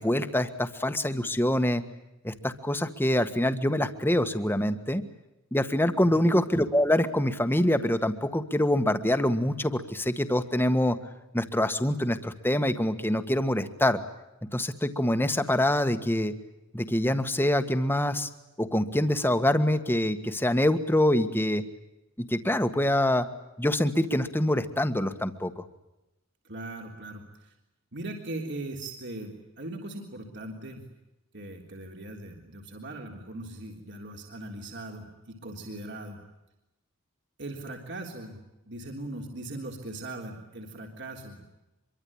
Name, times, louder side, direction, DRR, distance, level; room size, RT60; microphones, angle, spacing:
voice 1, 0.0-1.8 2.2-5.0 5.5-11.0 11.3-14.0 14.5-16.3 16.7-18.3 18.6-21.6 22.2-23.3 23.6-25.6, left 1 dB, 10° left, 9 dB, 1.6 m, -25 dB
voice 2, 26.4-27.5 27.9-30.8 31.3-36.2 37.4-41.5, right 2 dB, 55° right, 2 dB, 3.6 m, -39 dB
25.5 x 23.5 x 8.8 m, 0.95 s
head